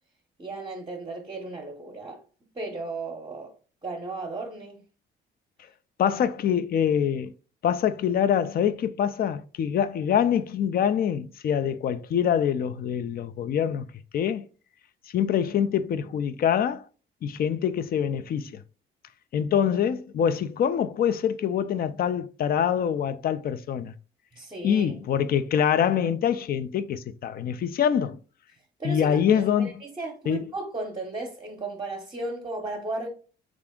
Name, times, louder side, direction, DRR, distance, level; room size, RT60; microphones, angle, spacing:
voice 1, 0.4-2.2 2.5-3.5 3.8-4.8 6.0-6.2 24.3-24.9 28.8-33.1, right 2 dB, 20° right, 0.7 m, -35 dB
voice 2, 6.0-7.3 7.6-13.9 14.1-14.4 15.1-16.9 17.2-18.6 19.3-23.9 24.6-28.2 28.8-29.7 30.3-30.4, left 8 dB, 50° left, 0.4 m, -25 dB
3.4 x 2.5 x 3.5 m
cardioid pair, 90°, 20 cm